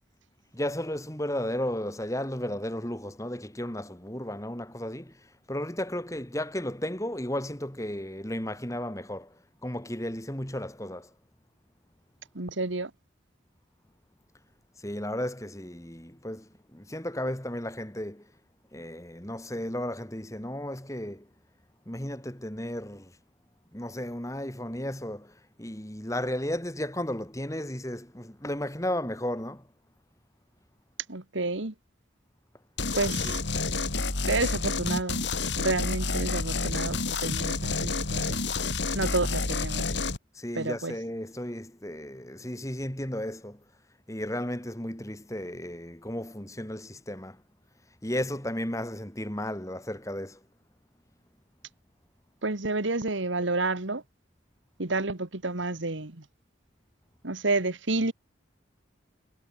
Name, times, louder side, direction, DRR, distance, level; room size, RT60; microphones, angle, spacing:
voice 1, 0.5-11.1 14.8-18.3 18.7-21.3 21.9-23.1 23.7-29.7 33.2-33.4 40.3-43.6 44.1-47.4 48.0-50.4, left 1 dB, 15° left, 2.4 m, -34 dB
voice 2, 12.4-12.9 31.1-31.7 33.0-33.4 34.2-35.2 35.6-38.4 38.9-39.9 40.6-40.9 52.4-54.0 54.8-56.2 57.2-58.1, right 3 dB, 75° right, 1.9 m, -30 dB
sound 1, 32.8-40.2, left 3 dB, 65° left, 3.6 m, -29 dB
head